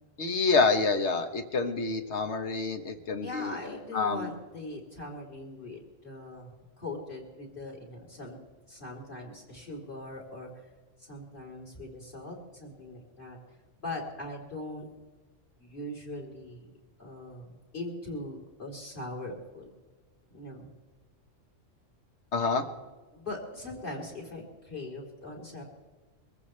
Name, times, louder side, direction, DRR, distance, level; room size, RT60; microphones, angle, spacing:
voice 1, 0.2-3.5 3.9-4.3 22.3-22.6, left 4 dB, 60° left, 7 dB, 1.5 m, -27 dB
voice 2, 3.2-8.4 8.7-10.7 11.0-13.4 13.8-14.9 15.6-16.7 17.0-17.5 17.7-19.7 20.3-20.7 23.1-25.6, left 2 dB, 40° left, -1 dB, 3.9 m, -41 dB
23.5 x 14.5 x 3.3 m, 1.3 s
omnidirectional pair, 1.3 m